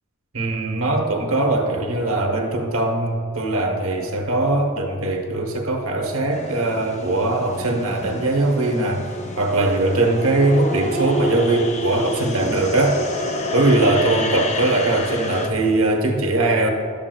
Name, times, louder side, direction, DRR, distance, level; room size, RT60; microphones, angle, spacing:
voice 1, 0.3-13.0 13.5-16.7, right 2 dB, 65° right, 2 dB, 0.9 m, -21 dB
sound 1, 6.3-15.5, left 1 dB, 30° left, 0.5 m, -29 dB
12.0 x 7.7 x 2.3 m, 2.4 s
head